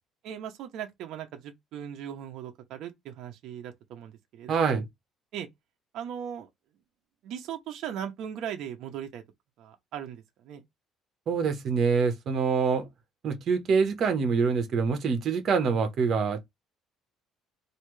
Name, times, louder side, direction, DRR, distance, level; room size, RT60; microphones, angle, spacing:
voice 1, 0.2-4.8 5.3-5.5 5.9-6.5 7.2-9.2 9.6-10.6, right 9 dB, 70° right, 0.8 m, -38 dB
voice 2, 4.5-4.8 11.3-12.9 13.2-16.4, right 5 dB, 50° right, 1.1 m, -25 dB
3.2 x 2.8 x 3.2 m
cardioid pair, 125°, 0 cm